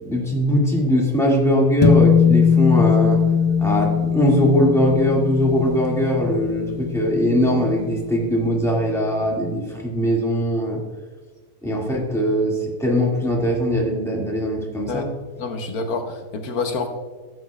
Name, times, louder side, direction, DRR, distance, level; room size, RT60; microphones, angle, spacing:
voice 1, 0.0-3.2 3.6-10.8 11.6-15.1, equal, ahead, -3 dB, 2.0 m, -20 dB
sound 1, 1.8-8.4, left 7 dB, 35° left, 1.1 m, -20 dB
voice 2, 15.4-16.9, left 4 dB, 80° left, 5 dB, 1.4 m, -27 dB
15.0 x 7.8 x 2.3 m, 1.4 s
omnidirectional pair, 1.6 m